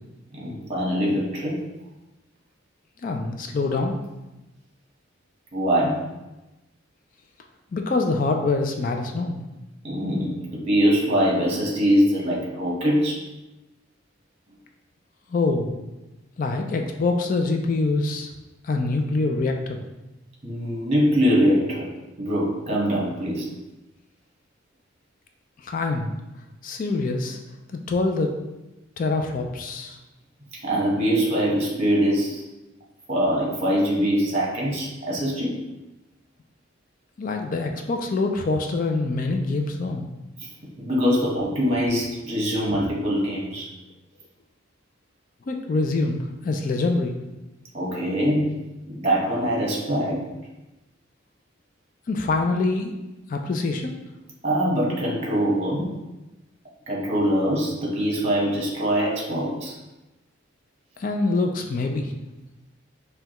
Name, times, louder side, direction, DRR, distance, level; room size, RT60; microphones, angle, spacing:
voice 1, 0.3-1.6 5.5-6.0 9.8-13.2 20.4-21.9 22.2-23.5 30.6-32.4 33.1-35.6 40.8-43.7 47.7-48.5 48.9-50.2 54.4-55.9 56.9-59.8, equal, 30° right, -4 dB, 1.1 m, -23 dB
voice 2, 3.0-4.0 7.7-9.5 15.3-15.7 16.4-18.3 18.6-19.8 25.6-26.1 26.6-27.4 27.7-28.3 29.0-30.0 37.2-40.1 42.7-42.8 45.5-47.2 52.1-53.0 53.3-54.0 61.0-62.1, left 3 dB, 40° left, 4 dB, 0.3 m, -25 dB
5.4 x 2.2 x 2.9 m, 1.0 s
head